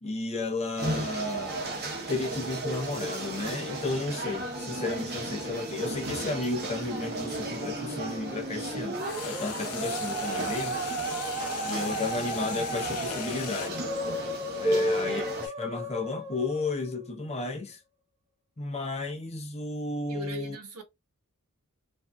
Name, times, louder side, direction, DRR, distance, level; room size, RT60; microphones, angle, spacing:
voice 1, 0.0-11.2 11.6-13.8 14.6-17.8 18.6-20.6, left 3 dB, 30° left, 0.6 m, -33 dB
sound 1, 0.8-15.5, right 1 dB, 45° right, 0.9 m, -34 dB
sound 2, 2.9-7.9 9.0-13.7, left 7 dB, 75° left, 0.5 m, -39 dB
Musical instrument, 4.0-17.4, right 2 dB, 30° right, 1.1 m, -37 dB
voice 2, 14.7-15.1 20.1-20.8, equal, 80° right, 1.0 m, -39 dB
3.4 x 2.5 x 2.2 m
head